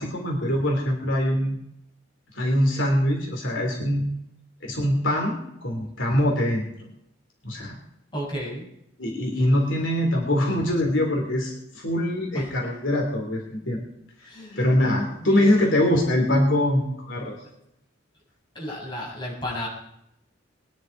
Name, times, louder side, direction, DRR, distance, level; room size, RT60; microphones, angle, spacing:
voice 1, 0.0-1.6 2.3-4.1 4.6-6.7 7.4-7.8 9.0-13.8 14.6-17.3, left 1 dB, 70° left, 0 dB, 3.3 m, -23 dB
voice 2, 8.1-8.7 12.3-12.5 14.2-14.7 15.2-15.8 18.5-19.7, equal, 25° left, -4 dB, 6.5 m, -33 dB
22.0 x 10.5 x 4.7 m, 0.80 s
head